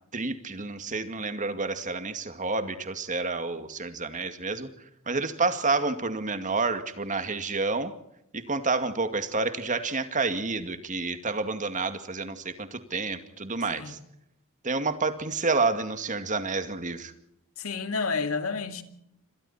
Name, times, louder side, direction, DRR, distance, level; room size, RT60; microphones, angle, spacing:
voice 1, 0.1-4.7 5.1-7.9 8.3-14.0 14.6-17.1, right 3 dB, 35° right, 2.2 m, -29 dB
voice 2, 17.6-18.8, left 4 dB, 70° left, 2.4 m, -30 dB
28.0 x 25.5 x 4.4 m
head